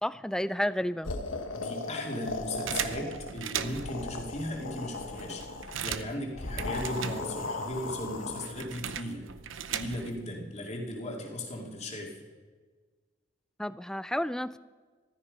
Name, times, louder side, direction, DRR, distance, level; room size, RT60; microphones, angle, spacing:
voice 1, 0.0-1.1 13.6-14.6, left 1 dB, 5° left, 16 dB, 0.3 m, -31 dB
sound 1, 1.0-3.3 3.7-5.8 6.3-8.6, left 2 dB, 80° left, 1.2 m, -37 dB
voice 2, 1.5-9.2 9.7-12.1, left 1 dB, 35° left, 1 dB, 2.6 m, -37 dB
sound 2, 2.7-4.0 4.6-4.7 5.0-7.6 7.9-10.3, right 8 dB, 80° right, 0.7 m, -38 dB
14.5 x 13.0 x 5.4 m, 1.5 s
head